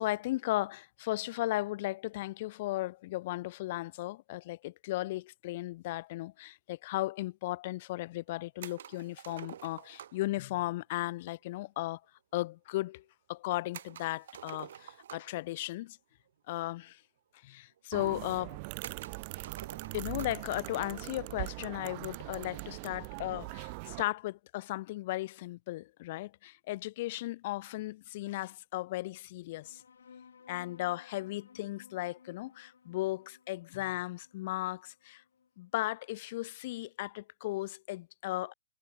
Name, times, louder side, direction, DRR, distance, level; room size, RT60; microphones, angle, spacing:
voice 1, 0.0-12.0 12.3-13.0 13.3-16.0 16.5-17.0 17.4-18.6 19.9-29.8 30.5-35.2 35.6-38.5, left 18 dB, 45° left, 0.8 m, -36 dB
sound 1, 8.6-10.3 13.7-15.5 16.5-16.6 16.9-17.0 17.8-17.9 18.8-20.5, right 10 dB, 60° right, 0.5 m, -48 dB
sound 2, 17.9-24.0, right 30 dB, 40° right, 1.5 m, -41 dB
sound 3, 29.6-36.6, left 6 dB, 75° left, 6.1 m, -59 dB
hypercardioid pair, 125°, 0 cm